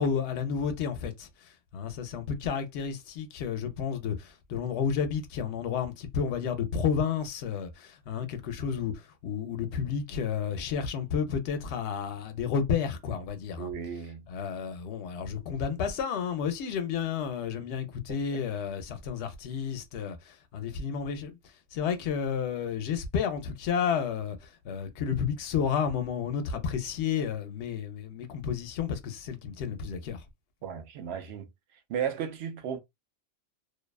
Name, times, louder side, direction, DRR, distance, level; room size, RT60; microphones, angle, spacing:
voice 1, 0.0-8.9 9.2-13.7 14.3-21.3 21.7-30.2, left 7 dB, 70° left, 0.9 m, -31 dB
voice 2, 13.6-14.2 18.1-18.4 30.6-31.5 31.9-32.8, right 8 dB, 65° right, 0.8 m, -35 dB
2.6 x 2.2 x 2.2 m
omnidirectional pair, 1.3 m